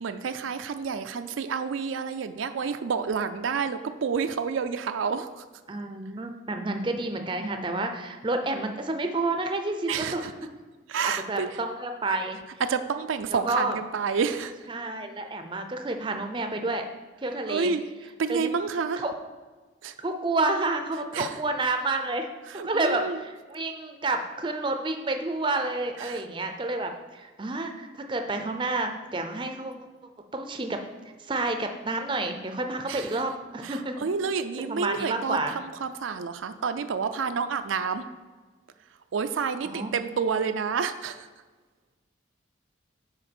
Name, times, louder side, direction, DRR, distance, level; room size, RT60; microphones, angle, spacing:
voice 1, 0.0-5.4 9.9-10.3 10.9-11.5 12.6-14.5 17.5-17.8 18.2-19.0 19.8-19.9 21.1-21.3 22.5-23.2 26.0-26.2 32.9-33.2 33.6-38.1 39.1-41.3, right 5 dB, 80° right, 9 dB, 0.4 m, -29 dB
voice 2, 5.7-10.3 11.0-12.4 13.3-13.8 14.7-16.9 17.2-17.7 18.3-18.5 19.0-19.1 20.0-22.3 22.5-29.7 30.3-30.8 31.2-34.1 34.7-35.5 39.6-40.0, right 2 dB, 25° right, 5 dB, 0.5 m, -29 dB
6.5 x 4.5 x 6.1 m, 1.3 s
head